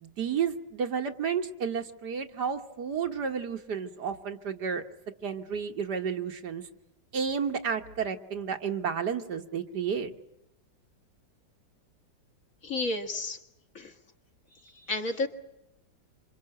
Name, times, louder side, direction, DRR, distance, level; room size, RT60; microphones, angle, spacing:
voice 1, 0.0-4.8 5.2-6.6 7.1-10.1, right 6 dB, 70° right, 6 dB, 2.0 m, -31 dB
voice 2, 12.6-13.4 13.7-13.9 14.7-15.3, left 2 dB, 50° left, 4 dB, 2.3 m, -31 dB
26.5 x 26.0 x 7.9 m, 0.86 s
omnidirectional pair, 1.9 m